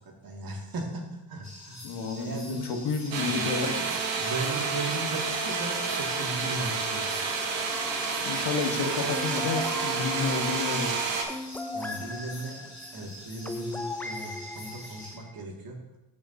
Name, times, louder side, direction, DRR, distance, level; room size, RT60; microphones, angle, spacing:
voice 1, 0.0-1.8 2.2-2.7 3.2-3.4 4.2-7.2 11.7-15.8, right 3 dB, 50° right, 0 dB, 2.2 m, -37 dB
sound 1, 1.4-15.2, left 1 dB, 35° left, 2.9 m, -46 dB
voice 2, 1.8-3.9 8.2-11.1, left 5 dB, 70° left, 4 dB, 1.3 m, -30 dB
sound 2, 3.1-11.2, right 4 dB, 85° right, 1.4 m, -30 dB
sound 3, 7.7-15.4, left 2 dB, 5° left, 0.3 m, -39 dB
13.5 x 5.9 x 2.7 m, 0.99 s
cardioid pair, 95°, 44 cm